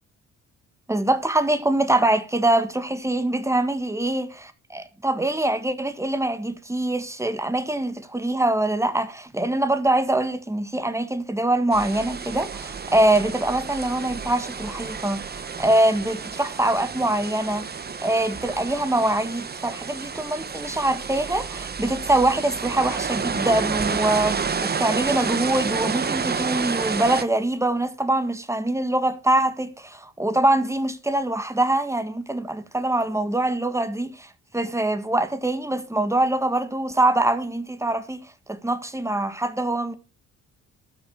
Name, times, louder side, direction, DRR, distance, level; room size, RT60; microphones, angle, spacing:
voice 1, 0.9-4.3 4.7-17.7 18.0-38.2 38.5-39.9, right 1 dB, 10° right, 1.6 m, -24 dB
sound 1, 11.7-27.2, right 5 dB, 30° right, 1.1 m, -30 dB
12.5 x 6.7 x 6.4 m
cardioid pair, 90°, 30 cm